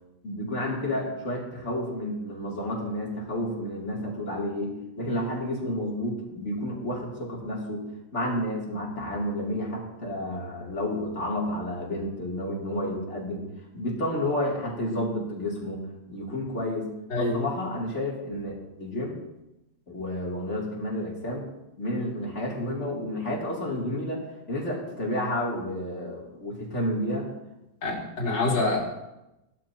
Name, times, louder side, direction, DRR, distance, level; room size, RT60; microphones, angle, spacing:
voice 1, 0.2-7.9 8.1-13.4 13.7-16.9 17.2-19.2 19.9-21.5 21.8-27.3 28.4-28.5, left 1 dB, 40° left, -3 dB, 3.1 m, -31 dB
voice 2, 17.1-17.4 27.8-28.8, left 2 dB, 75° left, -2 dB, 3.3 m, -26 dB
17.0 x 12.0 x 2.9 m, 0.95 s
omnidirectional pair, 1.9 m